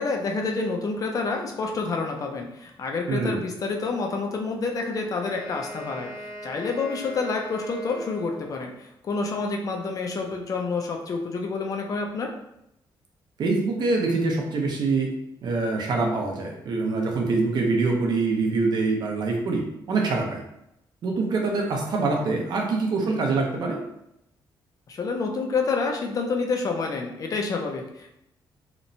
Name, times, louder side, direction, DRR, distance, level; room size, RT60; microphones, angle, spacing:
voice 1, 0.0-12.3 24.9-28.2, left 4 dB, 45° left, 2 dB, 0.4 m, -28 dB
voice 2, 3.1-3.4 13.4-15.1 15.4-19.6 19.9-20.4 21.0-23.8, right 3 dB, 55° right, 0 dB, 0.5 m, -24 dB
Wind instrument woodwind instrument, 5.1-8.8, equal, 75° left, 1.0 m, -40 dB
2.9 x 2.0 x 2.6 m, 0.81 s
cardioid pair, 140°, 8 cm